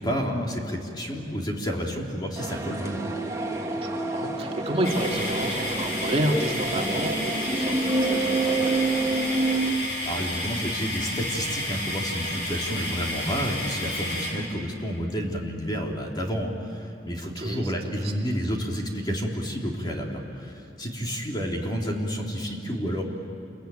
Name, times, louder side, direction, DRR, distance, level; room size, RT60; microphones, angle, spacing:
voice 1, 0.0-3.0 10.0-23.0, equal, 25° left, -1 dB, 3.3 m, -30 dB
sound 1, 2.4-9.7, right 2 dB, 20° right, 1.9 m, -28 dB
voice 2, 3.5-9.3 17.4-17.7 18.0-18.3, right 1 dB, 35° right, 0 dB, 2.5 m, -30 dB
sound 2, 4.8-14.3, left 1 dB, 65° left, 7.9 m, -31 dB
28.5 x 22.5 x 9.2 m, 3.0 s
head